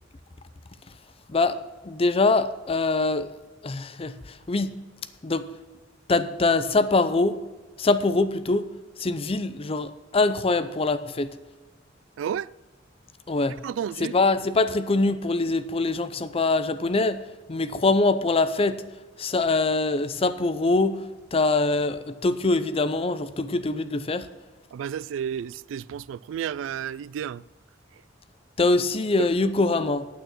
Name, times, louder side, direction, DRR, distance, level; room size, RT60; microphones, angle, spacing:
voice 1, 1.3-3.3 3.6-4.8 5.2-5.5 6.1-7.4 7.8-8.7 9.0-11.4 13.3-13.6 14.0-17.2 17.5-18.8 19.2-21.1 21.3-24.3 28.6-30.1, left 3 dB, 30° left, 0.5 m, -23 dB
voice 2, 12.2-12.5 13.6-14.2 24.7-27.4 29.2-29.3, right 8 dB, 85° right, 0.3 m, -31 dB
9.3 x 8.7 x 6.1 m
head